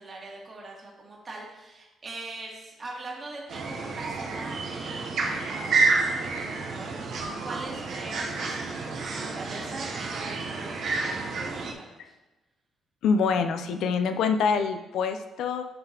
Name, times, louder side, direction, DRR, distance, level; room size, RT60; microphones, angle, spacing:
voice 1, 0.0-12.2, right 2 dB, 35° right, -3 dB, 1.8 m, -42 dB
sound 1, 3.5-11.7, right 3 dB, 70° right, 0.9 m, -29 dB
voice 2, 13.0-15.6, left 5 dB, 80° left, 8 dB, 0.5 m, -25 dB
11.5 x 3.8 x 2.9 m, 1.1 s
cardioid pair, 90°, 0 cm